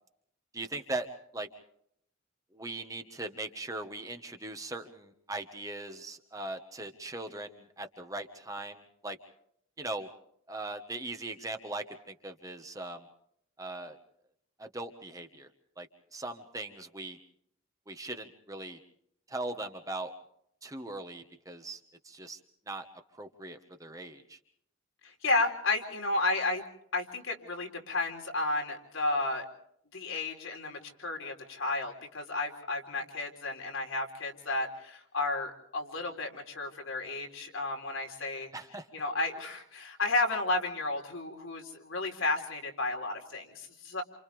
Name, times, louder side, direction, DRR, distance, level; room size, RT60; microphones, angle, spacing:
voice 1, 0.5-1.1 1.3-1.5 2.5-9.2 9.8-10.1 10.5-13.1 13.6-14.0 14.6-15.5 15.8-17.2 17.9-18.8 19.3-20.1 20.6-22.4 22.7-22.8 23.1-24.4 38.5-38.9, right 2 dB, 15° right, 6 dB, 1.4 m, -40 dB
voice 2, 25.0-26.6 26.9-29.5 29.9-38.5 38.9-44.0, left 2 dB, 80° left, 2 dB, 4.1 m, -32 dB
29.0 x 28.0 x 3.5 m, 0.70 s
head